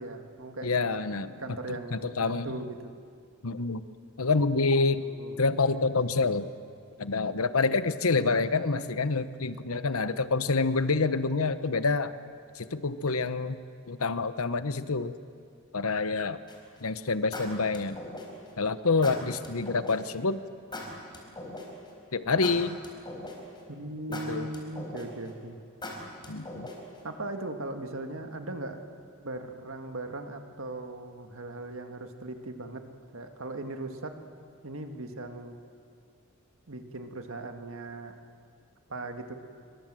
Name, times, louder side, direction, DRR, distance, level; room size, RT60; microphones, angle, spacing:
voice 1, 0.0-3.0 5.0-5.4 23.7-25.6 27.0-28.8 29.2-32.8 33.1-34.2 34.6-35.6 36.7-38.2 38.9-39.3, right 2 dB, 65° right, 5 dB, 2.0 m, -39 dB
voice 2, 0.6-1.3 1.9-2.5 3.4-3.8 4.2-5.0 5.4-6.5 7.0-12.1 12.5-13.6 13.9-15.1 15.7-16.4 16.8-18.0 18.6-20.4 22.1-22.8 24.1-24.5 26.3-26.7, left 3 dB, 80° left, 13 dB, 1.0 m, -27 dB
sound 1, 16.5-16.8 17.3-18.5 19.0-20.0 20.7-21.9 22.4-23.6 24.1-25.3 25.8-27.0, left 1 dB, 20° left, 4.2 m, -40 dB
26.5 x 24.0 x 7.7 m, 2.3 s
head